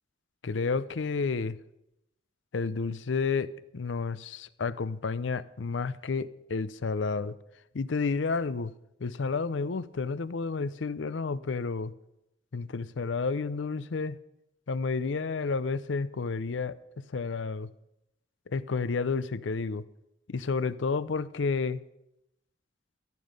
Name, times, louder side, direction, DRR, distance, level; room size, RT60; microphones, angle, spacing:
voice 1, 0.4-1.6 2.5-7.4 7.7-8.7 9.0-11.9 12.5-14.2 14.7-17.7 18.5-19.8 20.3-21.8, left 4 dB, 80° left, 16 dB, 0.6 m, -31 dB
14.0 x 11.0 x 5.2 m, 0.85 s
head